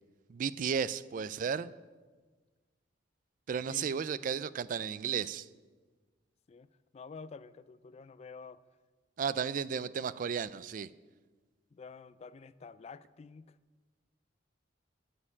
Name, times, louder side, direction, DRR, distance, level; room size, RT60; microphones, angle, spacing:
voice 1, 0.3-1.7 3.5-5.5 9.2-10.9, right 7 dB, 45° right, 0.3 m, -34 dB
voice 2, 3.7-4.0 6.5-8.6 11.7-13.6, left 5 dB, 35° left, 0.3 m, -49 dB
9.7 x 6.5 x 8.5 m
head